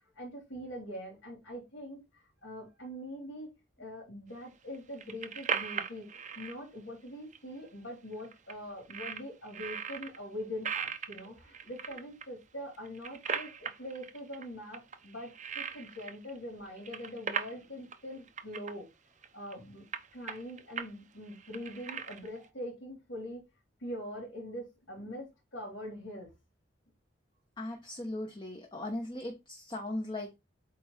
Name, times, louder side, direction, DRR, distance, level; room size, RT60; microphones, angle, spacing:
voice 1, 0.2-3.5 3.8-6.1 6.4-18.9 19.3-19.8 20.1-23.4 23.8-26.3, equal, 75° left, 3.7 m, -43 dB
sound 1, 4.7-6.5 7.3-7.4 7.7-7.8 8.1-8.5 8.9-10.2 10.6-12.2 12.7-14.4 14.7-16.4 16.7-17.6 17.9-18.0 18.3-18.7 19.2-19.5 19.9-20.9 21.3-22.4, right 6 dB, 40° right, 0.8 m, -38 dB
voice 2, 27.6-30.4, left 1 dB, 25° left, 1.2 m, -38 dB
8.5 x 3.5 x 4.4 m
head